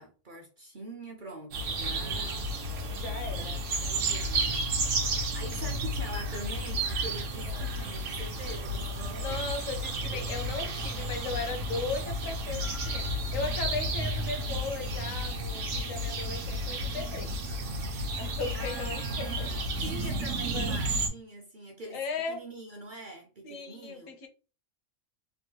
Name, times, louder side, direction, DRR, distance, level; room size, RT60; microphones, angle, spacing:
voice 1, 0.0-2.4 3.2-4.7 4.9-9.5 10.1-10.2 18.5-24.3, right 1 dB, 50° right, 0.7 m, -44 dB
sound 1, 1.5-21.1, right 1 dB, 70° right, 1.1 m, -32 dB
voice 2, 1.9-2.6 2.9-3.6 7.6-7.7 9.2-13.1 13.3-17.4 18.2-19.6 20.5-20.7 21.9-22.4 23.4-24.3, left 4 dB, 75° left, 1.1 m, -37 dB
3.5 x 2.2 x 2.8 m
omnidirectional pair, 1.4 m